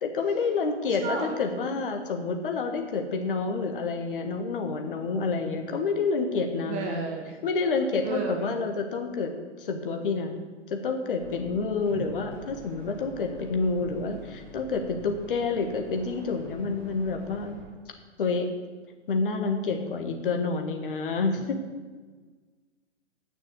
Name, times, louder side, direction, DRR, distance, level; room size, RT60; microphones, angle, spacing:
voice 1, 0.0-7.0 7.4-9.3 9.6-10.4 10.7-17.6 18.2-18.5 19.1-21.6, left 4 dB, 45° left, 4 dB, 1.5 m, -28 dB
voice 2, 1.0-1.3 6.7-7.4 8.0-8.5 11.9-12.1 13.8-13.9, right 5 dB, 20° right, 3 dB, 0.9 m, -33 dB
sound 1, 11.2-17.7, right 1 dB, 45° right, 3.7 m, -47 dB
9.7 x 6.4 x 7.9 m, 1.4 s
figure-of-eight pair, 125°, 36 cm